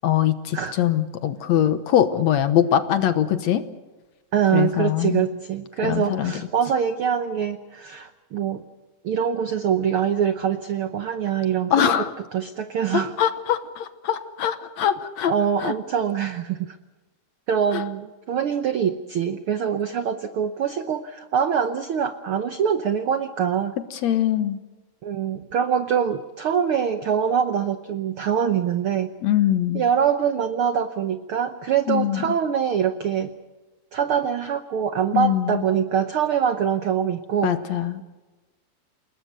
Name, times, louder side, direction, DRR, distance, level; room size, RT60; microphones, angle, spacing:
voice 1, 0.0-3.6 4.5-5.3 5.8-6.3 11.7-12.1 12.9-15.3 15.6-15.7 17.7-17.8 23.9-24.6 29.2-29.8 31.9-32.2 35.1-35.6 37.4-38.0, left 10 dB, 65° left, 11 dB, 2.1 m, -22 dB
voice 2, 4.3-8.6 9.0-12.0 12.3-13.1 15.3-16.8 17.5-23.8 25.0-29.1 29.7-33.3 33.9-37.5, right 8 dB, 80° right, 9 dB, 1.2 m, -24 dB
29.0 x 19.5 x 6.8 m, 1.2 s
omnidirectional pair, 3.8 m